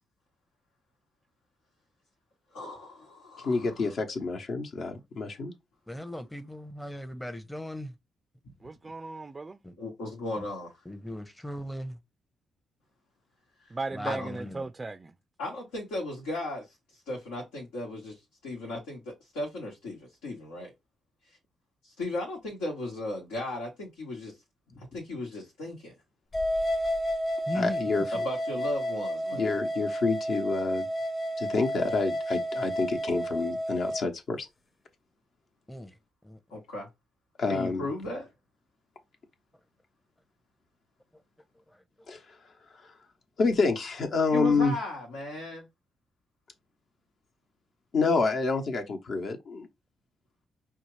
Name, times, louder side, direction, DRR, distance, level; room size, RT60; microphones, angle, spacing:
voice 1, 2.5-3.7 9.8-10.8 13.6-13.7 14.0-14.3 15.4-20.7 21.3-21.4 21.8-24.4 24.8-26.0 28.1-29.5 36.5-36.9 37.5-38.3 44.3-45.6, left 2 dB, 80° left, 1.2 m, -36 dB
voice 2, 3.4-5.5 27.5-28.0 29.3-30.9 31.4-34.5 37.4-37.9 42.1-42.2 43.4-44.7 47.9-49.7, left 4 dB, 60° left, 1.0 m, -28 dB
voice 3, 5.9-8.0 9.6-9.7 10.4-10.5 10.9-12.0 13.9-14.6 27.5-27.9 35.7-35.9 36.2-36.4 41.7-42.1, equal, 10° left, 0.7 m, -38 dB
voice 4, 8.6-9.6 13.7-15.1, right 3 dB, 30° right, 0.4 m, -36 dB
sound 1, 26.3-34.0, equal, 40° left, 1.2 m, -31 dB
5.4 x 2.4 x 3.1 m
hypercardioid pair, 45°, 0 cm